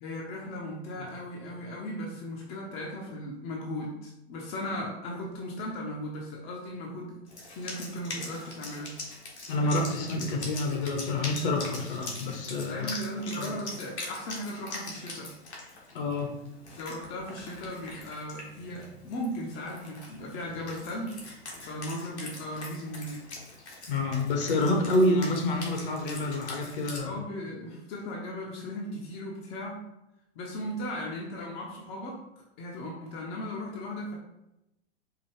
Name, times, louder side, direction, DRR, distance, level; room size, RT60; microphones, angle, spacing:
voice 1, 0.0-7.2 7.5-9.0 12.7-15.3 16.8-21.3 21.7-23.2 27.0-29.8 30.4-32.2 32.6-34.2, left 1 dB, 30° left, -2 dB, 0.7 m, -37 dB
Wind instrument woodwind instrument, 7.3-27.0, left 2 dB, 75° left, 1.3 m, -43 dB
voice 2, 9.5-12.9 13.4-13.5 15.9-16.3 23.9-27.2, left 2 dB, 50° left, 2 dB, 1.0 m, -28 dB
4.7 x 2.4 x 3.1 m, 0.88 s
figure-of-eight pair, 105°, 34 cm